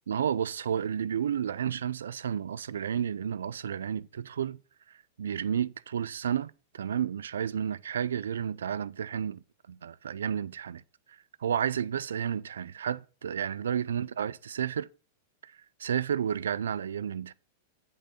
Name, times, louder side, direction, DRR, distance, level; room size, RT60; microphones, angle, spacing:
voice 1, 0.1-4.6 5.2-9.4 9.7-10.8 11.1-14.9 15.4-17.3, right 8 dB, 85° right, 0.3 m, -31 dB
8.1 x 3.8 x 6.3 m
hypercardioid pair, 115°, 0 cm